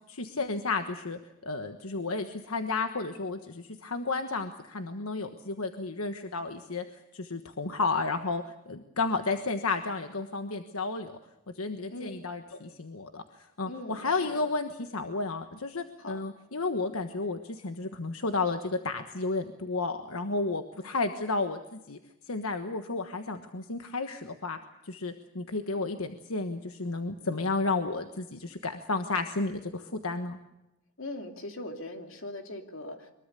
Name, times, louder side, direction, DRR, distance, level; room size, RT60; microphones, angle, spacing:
voice 1, 0.1-6.8 7.1-11.2 11.5-22.0 22.3-24.6 24.8-30.4, left 3 dB, 90° left, 7 dB, 1.4 m, -32 dB
voice 2, 13.6-14.4 16.0-16.2 31.0-33.1, left 1 dB, 70° left, 5 dB, 2.9 m, -40 dB
23.5 x 22.0 x 6.8 m, 0.95 s
head